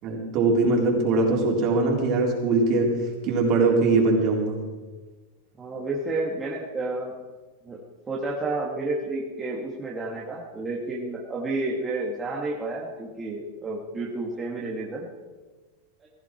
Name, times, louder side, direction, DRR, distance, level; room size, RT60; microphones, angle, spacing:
voice 1, 0.0-2.9 3.2-4.6, right 3 dB, 40° right, -1 dB, 4.2 m, -21 dB
voice 2, 5.6-7.1 7.6-7.8 8.1-15.1 16.0-16.1, right 2 dB, 15° right, -3 dB, 2.1 m, -30 dB
16.5 x 14.5 x 4.6 m, 1.3 s
supercardioid pair, 140°, 0 cm